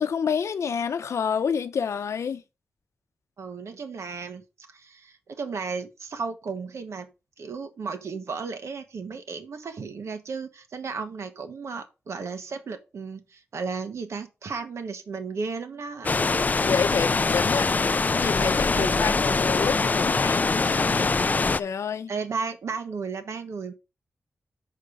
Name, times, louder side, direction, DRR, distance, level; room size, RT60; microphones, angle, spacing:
voice 1, 0.0-2.4 16.6-17.7 18.1-21.1 21.5-22.1, left 6 dB, 80° left, 0.7 m, -28 dB
voice 2, 3.4-7.1 7.4-16.1 18.7-19.1 22.1-23.7, right 5 dB, 80° right, 1.2 m, -34 dB
sound 1, 16.0-21.6, left 3 dB, 35° left, 0.4 m, -23 dB
6.5 x 5.3 x 5.0 m
wide cardioid pair, 85°, 5 cm